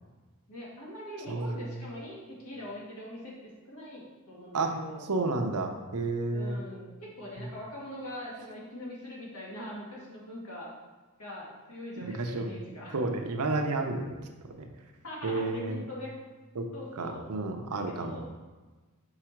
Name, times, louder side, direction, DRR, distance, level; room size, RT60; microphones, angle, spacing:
voice 1, 0.5-5.1 6.3-10.7 11.2-13.0 15.0-16.2 16.7-17.2 17.9-18.2, left 1 dB, 70° left, -5 dB, 1.9 m, -42 dB
voice 2, 1.3-1.8 4.5-4.7 5.1-6.6 7.4-7.5 12.0-12.5 12.9-14.1 14.5-14.7 15.2-15.8 16.6-16.7 17.0-18.2, right 3 dB, 80° right, 4 dB, 0.7 m, -31 dB
4.8 x 4.8 x 4.5 m, 1.3 s
head